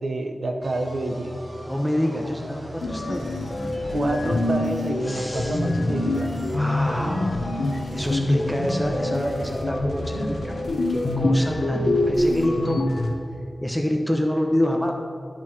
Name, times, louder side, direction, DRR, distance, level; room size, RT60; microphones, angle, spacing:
voice 1, 0.0-1.4 3.9-6.3 12.7-12.8, right 2 dB, 65° right, 5 dB, 0.7 m, -28 dB
sound 1, 0.6-11.2, equal, 40° right, 1.9 m, -39 dB
voice 2, 1.6-4.1 5.0-5.6 6.5-7.4 7.9-12.8 13.6-14.9, equal, ahead, 1 dB, 0.8 m, -27 dB
sound 2, 2.8-13.1, left 1 dB, 80° left, 1.0 m, -25 dB
11.5 x 4.2 x 5.0 m, 2.4 s
wide cardioid pair, 65°, 0 cm